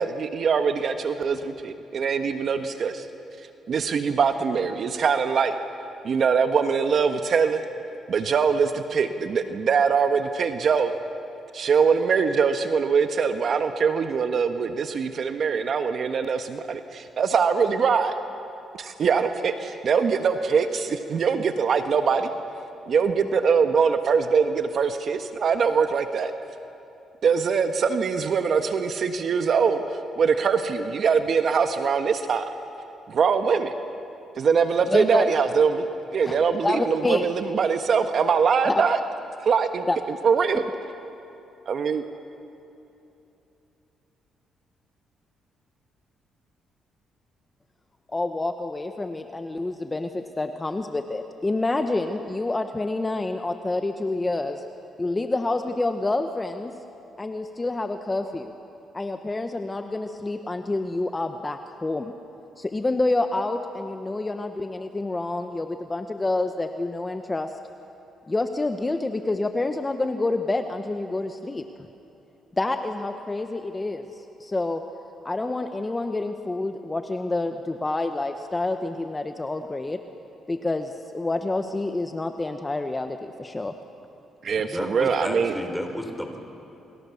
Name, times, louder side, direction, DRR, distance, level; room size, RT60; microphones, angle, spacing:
voice 1, 0.0-3.1 3.7-5.6 6.0-7.6 8.1-10.9 11.5-18.1 18.8-22.3 22.9-26.3 27.2-32.4 33.1-33.7 34.4-39.0 39.4-40.6 41.7-42.0 84.4-85.5, right 6 dB, 55° right, 8 dB, 1.3 m, -23 dB
voice 2, 34.9-35.3 36.3-36.4 36.6-37.3 38.7-38.8 39.9-40.0 40.5-40.6 48.1-54.6 55.0-56.7 57.2-58.5 58.9-62.1 62.6-67.5 68.3-71.7 72.6-74.8 75.2-80.0 80.5-83.7, left 2 dB, 20° left, 7 dB, 1.2 m, -28 dB
voice 3, 84.6-86.4, equal, ahead, 4 dB, 4.2 m, -32 dB
28.5 x 25.0 x 7.2 m, 3.0 s
cardioid pair, 90°, 0 cm